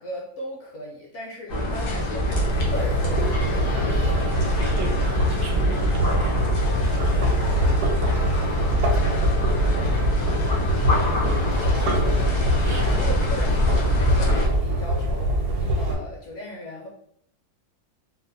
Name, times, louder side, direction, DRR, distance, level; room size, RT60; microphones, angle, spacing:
voice 1, 0.0-4.2 7.1-7.3 12.7-15.3 15.7-16.9, left 1 dB, 65° left, -2 dB, 0.8 m, -37 dB
sound 1, 1.5-14.5, left 1 dB, 85° left, 1.3 m, -26 dB
sound 2, 2.2-15.9, right 1 dB, 80° right, 1.2 m, -23 dB
voice 2, 4.6-6.4 8.0-8.5 10.9-12.4 12.6-13.1, right 2 dB, 65° right, 0 dB, 0.7 m, -39 dB
4.0 x 2.0 x 2.6 m, 0.70 s
omnidirectional pair, 1.7 m